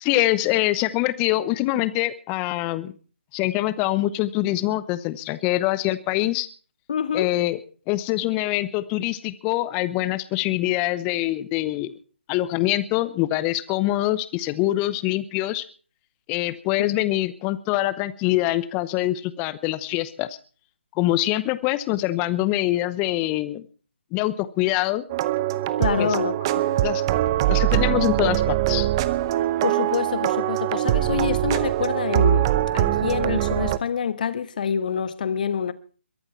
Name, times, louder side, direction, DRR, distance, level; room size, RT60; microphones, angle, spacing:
voice 1, 0.0-2.9 3.3-6.5 7.1-7.6 7.9-12.0 12.3-15.7 16.3-20.4 21.0-23.7 24.1-25.0 26.0-26.1 26.8-27.0 27.5-28.9, left 16 dB, 20° left, 0.8 m, -24 dB
voice 2, 6.9-7.3 25.8-26.6 29.4-35.7, left 7 dB, 45° left, 1.3 m, -27 dB
sound 1, 25.1-33.8, right 13 dB, 25° right, 0.7 m, -22 dB
22.0 x 11.0 x 4.5 m
figure-of-eight pair, 145°, 7 cm